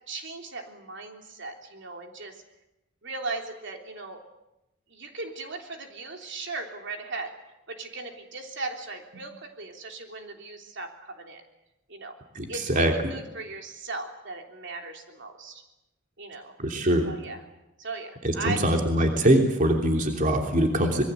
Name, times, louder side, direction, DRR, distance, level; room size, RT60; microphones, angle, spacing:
voice 1, 0.1-2.4 3.0-4.2 4.9-7.3 7.7-11.4 11.9-12.2 12.5-15.6 16.2-16.5 17.0-17.4 17.8-18.6, right 3 dB, 60° right, 3 dB, 3.4 m, -37 dB
voice 2, 12.3-13.1 16.6-17.1 18.2-21.0, right 1 dB, 40° right, 2 dB, 3.2 m, -23 dB
26.5 x 22.0 x 8.3 m, 0.93 s
head